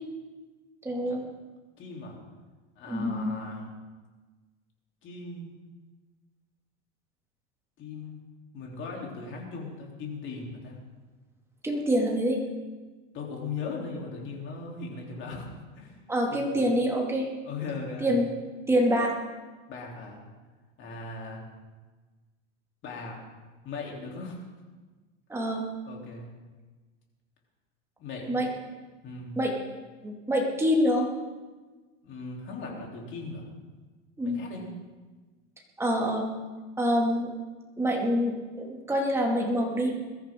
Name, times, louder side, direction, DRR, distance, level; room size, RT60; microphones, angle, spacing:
voice 1, 0.8-1.2 2.9-3.3 11.6-12.4 16.1-17.3 18.0-18.3 18.7-19.2 25.3-25.6 28.3-28.5 29.4-29.5 30.0-31.1 34.2-34.4 35.8-36.3 36.8-37.3 37.8-39.9, equal, 5° right, -1 dB, 2.4 m, -26 dB
voice 2, 1.8-2.2 2.8-3.7 5.0-5.5 7.8-8.2 8.5-10.8 13.1-15.5 15.7-16.0 16.3-16.6 17.4-18.2 19.7-20.2 20.8-21.5 22.8-23.2 23.6-24.4 25.9-26.3 28.0-28.4 29.0-29.3 32.0-33.5 34.2-34.7, left 4 dB, 35° left, -1 dB, 3.6 m, -38 dB
21.5 x 13.5 x 3.8 m, 1.3 s
supercardioid pair, 150°, 36 cm